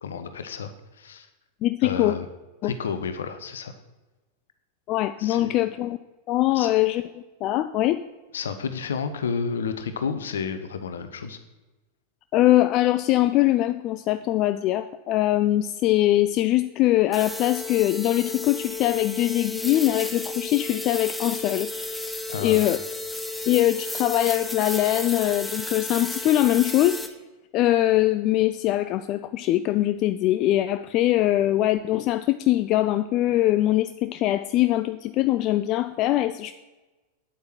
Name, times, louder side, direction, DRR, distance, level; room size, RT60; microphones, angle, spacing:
voice 1, 0.0-0.7 1.0-1.3 1.8-2.3 2.6-3.7 5.2-5.5 6.5-6.7 8.3-11.4 22.3-22.6, left 6 dB, 65° left, 10 dB, 0.9 m, -31 dB
voice 2, 1.6-2.2 2.6-2.7 4.9-6.0 6.3-7.0 7.4-8.0 12.3-21.7 22.4-22.8 23.5-27.0 27.5-36.5, left 15 dB, 40° left, 11 dB, 0.3 m, -22 dB
sound 1, 17.1-27.1, left 2 dB, 5° left, 0.8 m, -33 dB
9.0 x 8.2 x 4.5 m, 1.1 s
figure-of-eight pair, 90°, 0 cm